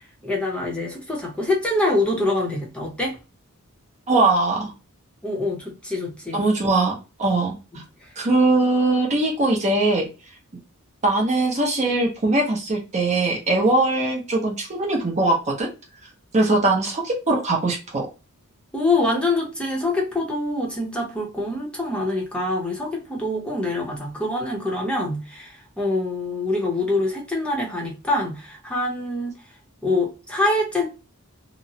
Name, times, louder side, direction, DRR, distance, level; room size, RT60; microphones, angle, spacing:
voice 1, 0.2-3.2 5.2-6.4 7.7-7.8 18.7-29.3 29.8-30.9, left 2 dB, 5° left, -2 dB, 0.7 m, -25 dB
voice 2, 4.1-4.7 6.3-7.8 8.2-10.1 11.0-15.7 16.3-18.0, right 2 dB, 35° right, 0 dB, 0.6 m, -21 dB
2.8 x 2.0 x 2.7 m, 0.30 s
head